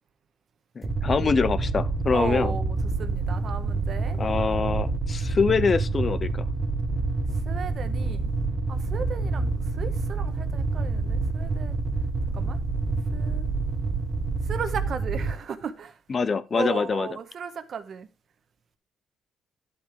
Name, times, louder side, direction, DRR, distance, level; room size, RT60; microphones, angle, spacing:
voice 1, 0.8-2.6 4.2-6.3 16.1-17.1, left 5 dB, 25° left, 0.5 m, -24 dB
sound 1, 0.8-15.3, right 3 dB, 20° right, 1.2 m, -27 dB
voice 2, 2.1-4.2 7.4-8.3 8.7-11.8 12.3-12.6 13.1-13.5 14.5-15.9 16.5-18.1, right 6 dB, 40° right, 1.2 m, -35 dB
11.5 x 7.8 x 3.6 m
cardioid pair, 160°, 0 cm